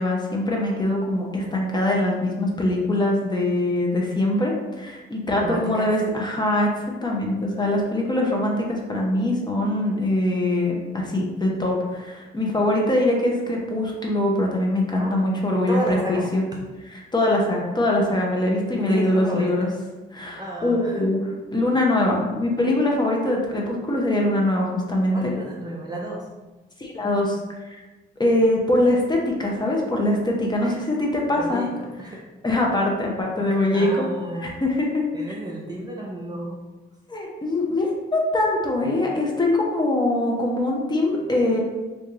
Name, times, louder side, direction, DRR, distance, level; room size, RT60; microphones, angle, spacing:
voice 1, 0.0-16.4 17.1-19.7 20.1-21.2 21.5-25.3 26.8-27.4 27.6-27.8 28.2-31.6 32.4-34.0 34.6-35.0 37.1-41.6, left 1 dB, 20° left, -1 dB, 0.8 m, -23 dB
voice 2, 5.4-6.0 15.0-15.2 15.7-16.3 16.5-16.6 18.8-19.7 20.4-21.1 25.1-26.3 30.6-30.8 31.4-32.2 33.5-34.6 35.1-36.6, right 1 dB, 20° right, -2 dB, 0.5 m, -32 dB
3.2 x 2.6 x 3.6 m, 1.2 s
cardioid pair, 90°, 20 cm